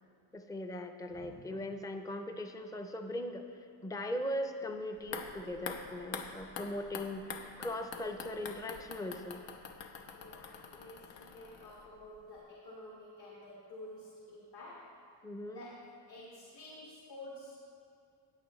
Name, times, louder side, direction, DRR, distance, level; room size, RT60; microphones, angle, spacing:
voice 1, 0.3-9.4 15.2-15.7, left 1 dB, 10° left, 6 dB, 0.4 m, -39 dB
voice 2, 1.1-1.6 10.1-15.0 15.5-17.6, left 1 dB, 60° left, -6 dB, 2.0 m, -51 dB
sound 1, 5.0-12.1 12.4-12.5, left 6 dB, 85° left, 0.9 m, -46 dB
16.0 x 9.1 x 3.1 m, 2.5 s
cardioid pair, 150°, 43 cm